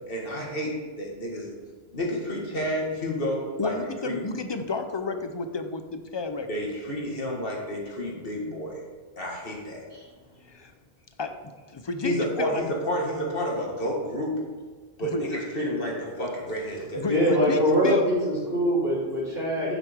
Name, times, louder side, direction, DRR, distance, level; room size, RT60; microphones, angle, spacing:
voice 1, 0.1-1.5 1.9-4.2 6.5-8.8 9.2-9.9 12.0-14.4 15.0-17.3, equal, 60° left, -1 dB, 2.0 m, -30 dB
voice 2, 3.6-6.5 10.5-10.7 11.2-11.3 11.7-12.6 15.1-15.2 17.0-18.1, left 3 dB, 35° left, 8 dB, 0.5 m, -31 dB
voice 3, 17.1-19.8, equal, 60° right, -10 dB, 2.8 m, -23 dB
8.9 x 8.0 x 3.5 m, 1.5 s
omnidirectional pair, 1.1 m